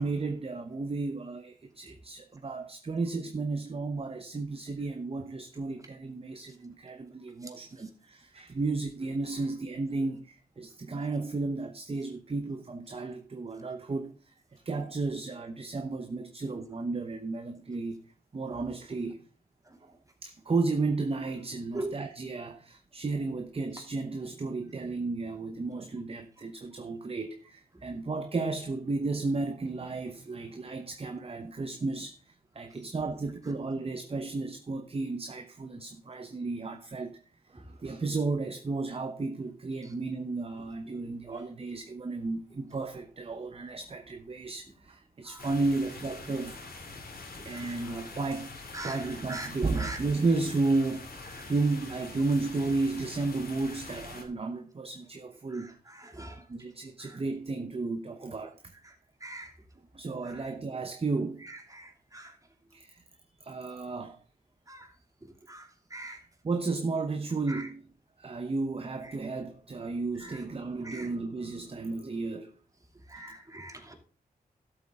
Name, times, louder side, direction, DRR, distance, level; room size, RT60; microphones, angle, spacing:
voice 1, 0.0-18.0 18.3-19.2 19.8-19.9 20.2-37.2 37.5-46.6 47.4-48.5 48.8-55.7 56.4-58.7 59.9-61.5 62.7-63.0 63.4-64.2 66.1-66.2 66.4-67.9 68.2-72.5, right 3 dB, 35° right, 1.0 m, -33 dB
sound 1, 45.4-54.2, left 3 dB, 70° left, 2.7 m, -44 dB
voice 2, 73.1-73.9, right 1 dB, 20° right, 2.7 m, -39 dB
13.0 x 7.9 x 3.7 m
cardioid pair, 70°, 16 cm